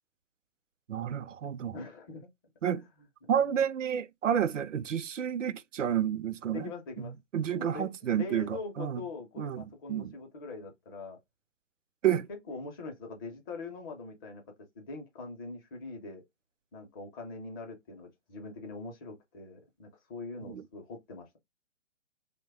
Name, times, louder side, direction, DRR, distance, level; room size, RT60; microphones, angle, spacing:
voice 1, 0.9-1.8 2.6-2.8 3.3-6.7 7.0-9.0 9.4-9.6 9.9-10.1 12.0-12.3 20.4-20.6, right 9 dB, 90° right, 0.5 m, -30 dB
voice 2, 1.7-2.3 2.8-2.9 3.4-3.5 6.4-7.1 7.5-11.2 12.3-14.4 14.8-16.2 16.7-21.4, left 3 dB, 20° left, 0.5 m, -42 dB
3.1 x 2.2 x 3.3 m
hypercardioid pair, 135°, 36 cm